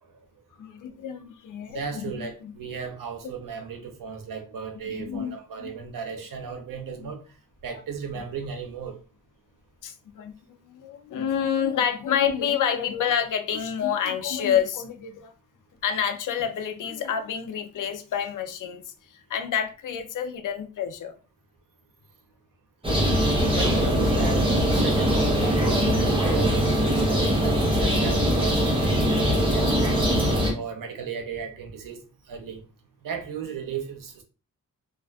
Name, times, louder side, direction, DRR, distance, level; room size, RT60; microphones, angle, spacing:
voice 1, 0.6-2.1 2.4-2.5 4.9-5.7 7.0-7.1 9.8-10.3 10.7-15.3 15.8-21.1, left 8 dB, 70° left, 0.5 m, -28 dB
voice 2, 1.7-7.2 7.6-9.0 23.5-28.6 29.2-29.9 30.5-32.0 32.3-32.6 33.0-34.2, right 6 dB, 80° right, 0.7 m, -35 dB
sound 1, 22.8-30.5, equal, 15° right, 0.7 m, -22 dB
2.4 x 2.4 x 2.2 m
wide cardioid pair, 160°, 33 cm